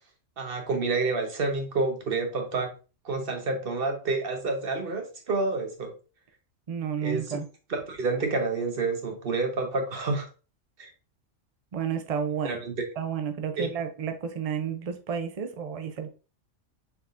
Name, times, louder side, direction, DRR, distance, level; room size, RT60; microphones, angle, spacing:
voice 1, 0.4-2.7 3.0-5.9 7.0-7.4 7.7-10.3 10.8-10.9 12.4-12.7 13.6-13.7, right 3 dB, 45° right, 1.0 m, -29 dB
voice 2, 6.7-7.5 11.7-12.6 13.0-16.1, right 7 dB, 75° right, 0.3 m, -31 dB
4.7 x 3.5 x 2.4 m
omnidirectional pair, 1.4 m